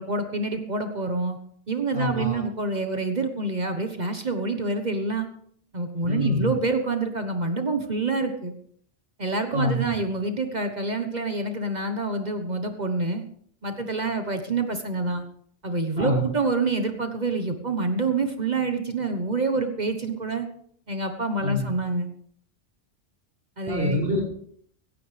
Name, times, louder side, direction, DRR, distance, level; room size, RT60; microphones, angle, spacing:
voice 1, 0.0-1.4 1.7-5.3 5.7-8.5 9.2-13.2 13.6-15.2 15.6-20.5 20.9-22.1 23.6-24.0, right 3 dB, 45° right, 6 dB, 1.3 m, -27 dB
voice 2, 1.9-2.4 6.1-6.5 9.5-9.9 16.0-16.3 21.4-21.6 23.7-24.2, left 1 dB, 85° right, -2 dB, 6.2 m, -25 dB
17.0 x 15.0 x 3.4 m, 0.63 s
omnidirectional pair, 1.1 m